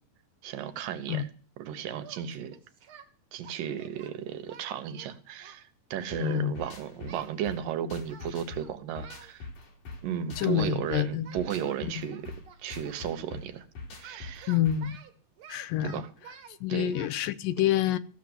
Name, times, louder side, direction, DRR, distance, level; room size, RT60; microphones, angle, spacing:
voice 1, 0.4-1.3 1.6-2.6 3.3-9.5 10.0-12.3 12.6-13.7 14.0-14.6 15.8-16.1 16.7-16.9, right 9 dB, 80° right, 2.8 m, -35 dB
Singing, 2.0-3.1 3.4-5.6 6.1-7.4 8.1-8.3 8.6-9.3 10.4-10.6 10.8-13.0 14.0-16.6 16.9-17.1, right 8 dB, 50° right, 1.9 m, -50 dB
sound 1, 6.1-15.0, left 3 dB, 70° left, 4.8 m, -43 dB
voice 2, 6.2-6.5 10.4-11.3 11.8-12.1 14.5-15.0 15.5-16.0 16.6-18.0, left 11 dB, 85° left, 2.5 m, -27 dB
15.5 x 7.4 x 8.0 m
omnidirectional pair, 3.9 m